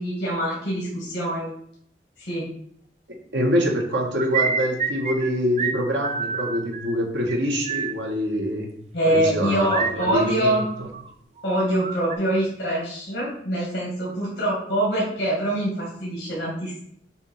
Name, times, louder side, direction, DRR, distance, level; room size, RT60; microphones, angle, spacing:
voice 1, 0.0-1.5 2.2-2.5 8.9-10.7 11.4-16.8, right 1 dB, 55° left, -4 dB, 2.0 m, -24 dB
voice 2, 3.1-8.7 9.0-10.6, equal, 85° right, 0 dB, 1.5 m, -25 dB
sound 1, 3.9-5.3 5.6-5.8 6.0-6.9 7.3-7.4 7.7-7.9 9.7-11.1 11.4-12.1, right 5 dB, 40° right, 0.5 m, -28 dB
7.1 x 2.7 x 5.5 m, 0.67 s
head